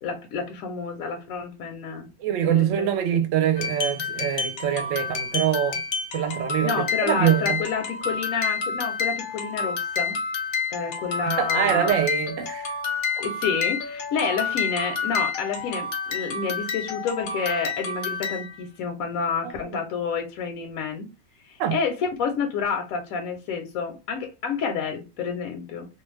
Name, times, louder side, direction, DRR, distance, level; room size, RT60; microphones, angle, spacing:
voice 1, 0.0-2.1 2.5-2.9 6.6-10.2 10.7-12.0 13.2-21.1 21.5-25.9, left 5 dB, 80° left, 1.0 m, -29 dB
voice 2, 2.2-5.8 6.1-7.6 11.3-12.7 19.4-19.8 21.6-21.8, right 10 dB, 70° right, 0.9 m, -24 dB
sound 1, 3.6-18.6, left 5 dB, 55° left, 0.7 m, -29 dB
2.5 x 2.2 x 3.2 m
omnidirectional pair, 1.5 m